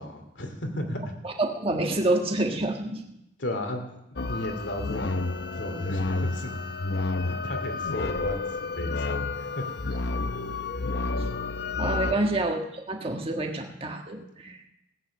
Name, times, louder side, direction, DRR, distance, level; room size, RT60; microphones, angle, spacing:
voice 1, 0.0-1.1 3.4-4.0 4.3-5.2 5.6-6.5 7.2-8.4 8.7-9.7 12.1-12.2, left 1 dB, 80° left, 4 dB, 2.6 m, -34 dB
voice 2, 1.2-3.0 11.7-14.6, right 2 dB, 30° right, 2 dB, 1.5 m, -28 dB
sound 1, 4.2-12.1, left 3 dB, 60° left, 0.7 m, -30 dB
17.0 x 9.4 x 6.4 m, 0.83 s
head